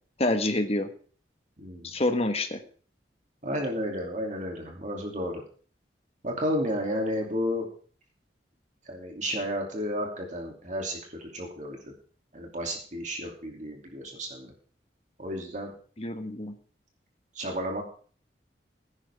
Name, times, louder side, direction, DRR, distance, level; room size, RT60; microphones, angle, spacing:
voice 1, 0.2-0.9 1.8-2.6 16.0-16.5, left 2 dB, 35° left, 6 dB, 1.4 m, -27 dB
voice 2, 1.6-1.9 3.4-5.4 6.2-7.7 8.9-11.9 12.3-14.5 15.2-15.7 17.3-17.8, equal, 45° right, 1 dB, 2.7 m, -32 dB
16.0 x 10.5 x 3.6 m, 0.43 s
head